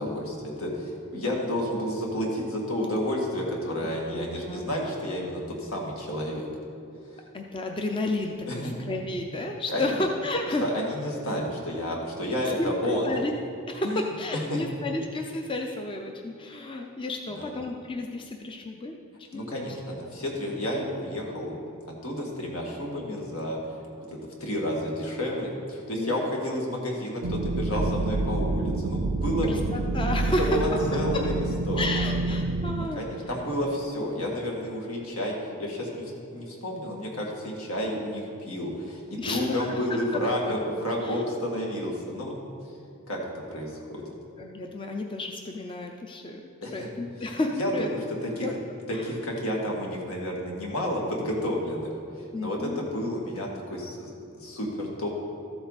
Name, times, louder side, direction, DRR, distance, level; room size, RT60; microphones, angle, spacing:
voice 1, 0.0-6.5 7.1-7.2 8.5-8.7 9.7-10.0 10.6-13.1 13.8-14.0 14.5-14.6 17.4-17.5 19.3-21.8 22.0-23.6 24.0-29.5 30.4-31.4 31.7-32.0 33.0-42.3 43.1-43.2 43.5-44.0 46.6-46.9 47.2-48.5 48.9-55.1, equal, 75° left, -2 dB, 2.0 m, -31 dB
voice 2, 4.1-4.7 7.3-10.6 12.6-13.3 13.7-13.9 14.2-20.0 26.0-26.3 29.4-30.8 31.8-33.0 39.2-39.8 40.1-40.6 41.0-41.2 44.4-46.4 46.7-47.9 48.4-48.5 48.9-49.0 52.3-52.9, left 2 dB, 25° left, 2 dB, 0.5 m, -32 dB
sound 1, 27.2-32.9, right 2 dB, 60° right, 0.5 m, -28 dB
13.5 x 8.0 x 4.1 m, 2.4 s
head